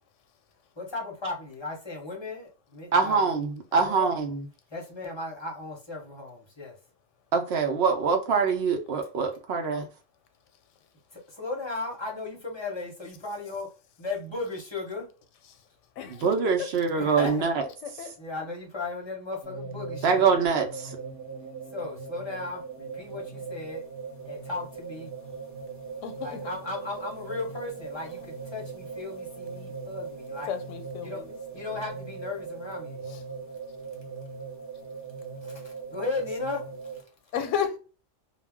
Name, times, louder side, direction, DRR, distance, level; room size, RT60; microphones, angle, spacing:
voice 1, 0.8-3.3 3.7-4.1 4.7-6.7 9.7-9.8 11.1-13.7 14.0-15.1 16.9-17.4 18.2-20.3 21.7-23.8 24.3-25.1 26.2-30.5 31.0-31.2 31.5-33.0 35.4-36.6, left 3 dB, 30° left, 0.6 m, -36 dB
voice 2, 2.9-4.4 7.3-9.9 16.2-17.6 20.0-21.0, right 5 dB, 65° right, 0.8 m, -24 dB
voice 3, 16.0-16.5 17.3-17.4 17.8-18.2 26.0-26.4 30.5-31.4 31.7-31.8 33.1-33.2 37.3-37.8, left 8 dB, 90° left, 0.9 m, -33 dB
sound 1, 19.4-37.0, right 4 dB, 25° right, 0.4 m, -40 dB
2.3 x 2.1 x 3.4 m
omnidirectional pair, 1.2 m